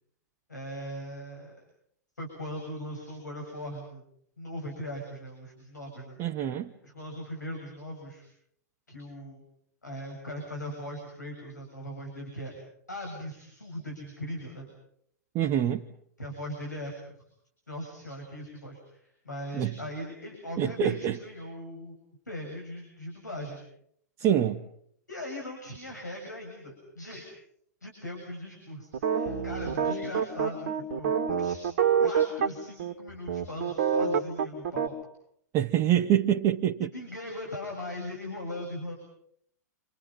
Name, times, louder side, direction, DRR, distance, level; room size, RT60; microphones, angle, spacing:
voice 1, 0.5-1.5 2.2-4.0 4.4-6.2 6.8-8.3 8.9-9.4 9.8-12.5 12.9-14.7 16.2-17.2 17.7-22.0 22.3-23.6 25.1-27.3 27.8-31.6 32.0-34.9 36.8-38.9, equal, 80° left, 7.4 m, -39 dB
voice 2, 6.2-6.7 15.3-15.9 19.5-19.7 20.6-21.2 24.2-24.6 35.5-36.9, right 10 dB, 30° right, 1.2 m, -25 dB
sound 1, 28.9-32.5 32.8-32.9 33.3-34.9, right 7 dB, 50° right, 2.5 m, -26 dB
29.5 x 27.5 x 5.7 m
figure-of-eight pair, 100°, 9 cm